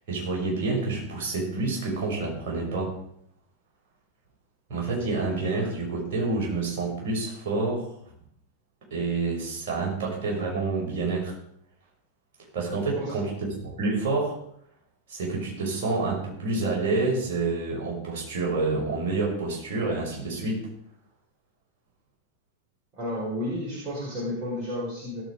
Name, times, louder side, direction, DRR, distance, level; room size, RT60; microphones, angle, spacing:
voice 1, 0.1-3.0 4.7-7.9 8.9-11.4 12.5-13.3 13.6-14.4 15.1-20.7, right 3 dB, 50° right, -3 dB, 6.2 m, -28 dB
voice 2, 22.9-25.2, left 1 dB, 35° right, -5 dB, 4.7 m, -32 dB
17.5 x 8.2 x 4.9 m, 0.66 s
figure-of-eight pair, 90°, 0 cm